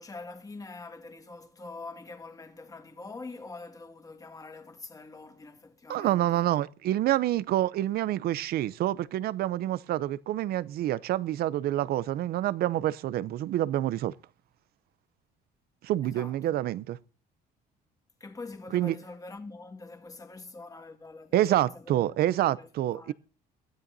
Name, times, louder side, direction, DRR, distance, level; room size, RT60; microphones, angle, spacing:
voice 1, 0.0-6.5 16.0-16.7 18.2-23.1, left 3 dB, 20° left, 1.8 m, -45 dB
voice 2, 5.9-14.1 15.8-17.0 18.7-18.9 21.3-23.1, right 13 dB, 65° right, 0.6 m, -27 dB
21.5 x 13.5 x 2.7 m
cardioid pair, 110°, 17 cm